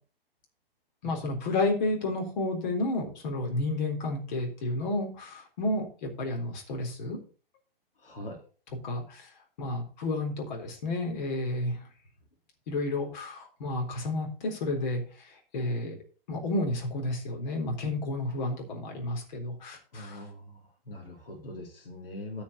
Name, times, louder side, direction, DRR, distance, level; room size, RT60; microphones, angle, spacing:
voice 1, 1.0-7.2 8.8-9.3 9.6-11.8 12.7-15.9 16.3-20.2, left 2 dB, 50° left, 1 dB, 3.8 m, -31 dB
voice 2, 8.0-8.4 19.9-20.6 20.9-22.4, left 1 dB, 65° left, 1 dB, 3.5 m, -42 dB
10.0 x 5.8 x 6.9 m, 0.38 s
figure-of-eight pair, 120°, 29 cm